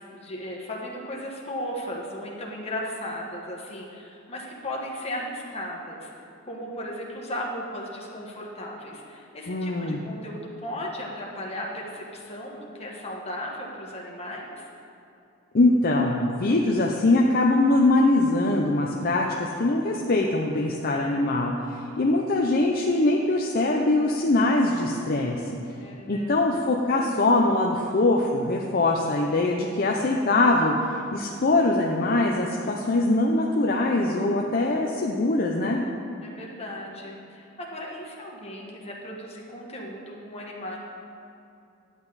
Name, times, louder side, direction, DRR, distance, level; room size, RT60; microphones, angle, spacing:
voice 1, 0.0-6.1 6.5-14.7 25.8-26.3 36.2-40.8, left 1 dB, 30° left, -2 dB, 1.5 m, -36 dB
voice 2, 9.5-10.0 15.5-21.5 22.0-25.4 26.1-30.7 31.1-35.8, left 2 dB, 45° left, 0 dB, 0.6 m, -22 dB
11.0 x 8.7 x 4.1 m, 2.7 s
head